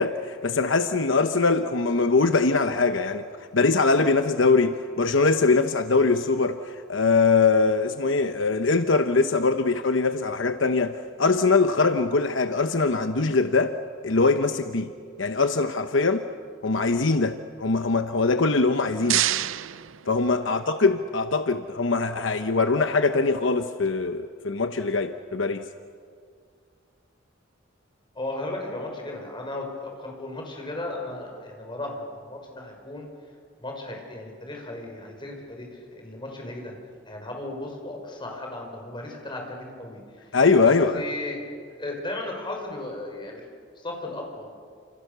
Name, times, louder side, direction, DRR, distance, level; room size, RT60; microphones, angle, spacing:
voice 1, 0.0-3.2 3.5-13.8 14.0-14.9 15.2-16.3 16.6-19.3 20.1-25.6 40.3-41.0, left 4 dB, 75° left, 8 dB, 1.0 m, -22 dB
sound 1, 18.6-20.8, right 13 dB, 90° right, 0.6 m, -29 dB
voice 2, 28.1-33.1 33.6-36.7 37.1-40.0 40.3-40.4 40.6-41.4 41.8-43.4 43.8-44.5, left 2 dB, 25° left, 1 dB, 5.9 m, -35 dB
29.5 x 27.5 x 6.9 m, 2.1 s
head